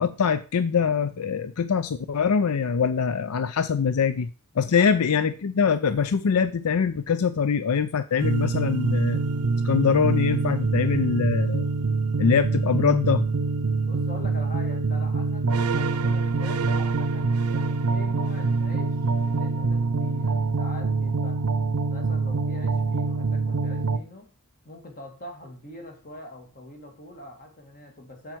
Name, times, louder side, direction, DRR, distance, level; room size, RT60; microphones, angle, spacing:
voice 1, 0.0-4.3 4.6-9.2 9.6-11.7 12.2-13.2, left 6 dB, 85° left, 12 dB, 0.5 m, -23 dB
sound 1, 8.2-24.0, right 4 dB, 85° right, 0.6 m, -25 dB
voice 2, 13.9-21.4 21.9-24.3 24.6-28.4, left 1 dB, 40° left, 3 dB, 2.3 m, -43 dB
7.7 x 7.2 x 4.6 m, 0.34 s
head